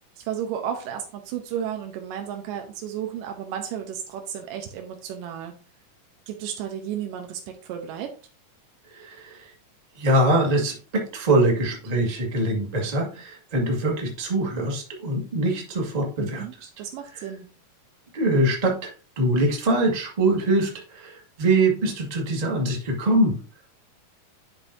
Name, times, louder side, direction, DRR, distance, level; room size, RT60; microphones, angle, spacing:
voice 1, 0.2-5.5 6.3-8.1 16.2-16.5 16.8-17.5, right 9 dB, 90° right, 4 dB, 2.5 m, -33 dB
voice 2, 8.9-9.5 10.0-16.7 17.1-17.2 18.1-23.4, right 1 dB, 20° right, -1 dB, 1.1 m, -23 dB
11.0 x 5.4 x 2.7 m, 0.36 s
omnidirectional pair, 3.8 m